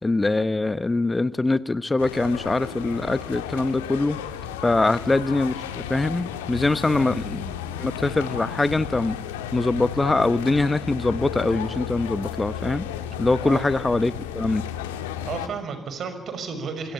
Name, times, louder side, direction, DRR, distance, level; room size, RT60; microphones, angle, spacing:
voice 1, 0.0-4.2 4.6-7.4 7.8-9.2 9.5-12.8 13.2-14.6, left 2 dB, 20° left, 16 dB, 1.1 m, -23 dB
sound 1, 2.0-15.5, left 9 dB, 80° left, 1.8 m, -33 dB
voice 2, 15.3-16.9, right 5 dB, 55° right, 9 dB, 6.1 m, -33 dB
26.5 x 24.5 x 8.8 m, 0.88 s
figure-of-eight pair, 45°, 0 cm